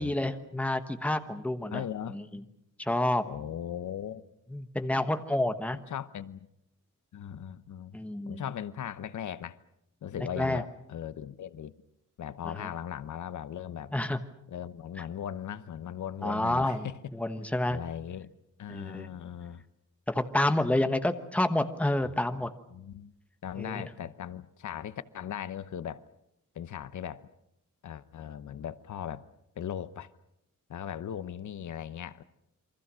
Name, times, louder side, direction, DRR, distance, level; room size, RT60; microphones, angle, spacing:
voice 1, 0.0-1.8 2.1-2.2 2.8-3.2 4.5-5.8 7.9-8.4 10.4-10.6 13.9-14.2 16.2-17.8 18.7-19.1 20.1-22.5 23.6-23.8, left 1 dB, 5° left, 1.2 m, -29 dB
voice 2, 1.7-2.2 3.2-4.3 5.9-6.5 7.1-7.9 8.3-9.6 10.0-11.7 12.2-13.9 14.5-17.0 17.7-18.3 18.6-19.6 22.0-22.1 22.7-23.1 23.4-26.0 26.5-27.3 27.8-29.2 29.6-30.1 30.7-32.2, left 9 dB, 70° left, 0.9 m, -38 dB
28.5 x 24.0 x 6.3 m
wide cardioid pair, 165°, 31 cm